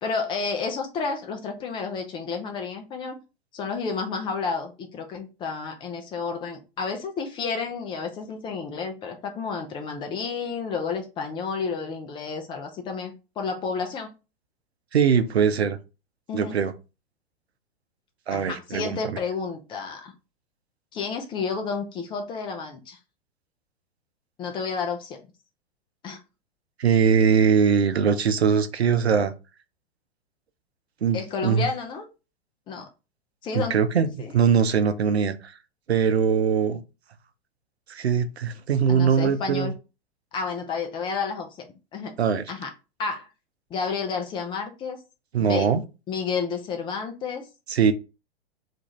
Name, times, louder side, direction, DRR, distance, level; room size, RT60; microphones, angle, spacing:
voice 1, 0.0-3.2 3.5-14.1 16.3-16.6 18.3-20.1 20.9-23.0 24.4-25.2 26.0-26.2 31.1-32.1 32.7-32.9 33.4-33.8 34.2-34.3 38.9-39.7 40.3-41.7 41.9-42.1 42.5-42.7 43.0-43.3 43.7-45.0 45.4-45.7 46.1-47.4, left 5 dB, 15° left, 0.3 m, -31 dB
voice 2, 14.9-15.8 16.3-16.7 18.3-19.2 26.8-29.3 31.0-31.7 33.5-34.1 34.3-35.5 35.9-36.8 37.9-39.7 42.2-42.4 45.3-45.8 47.7-47.9, right 7 dB, 90° right, 0.5 m, -21 dB
2.5 x 2.4 x 2.9 m
figure-of-eight pair, 100°, 31 cm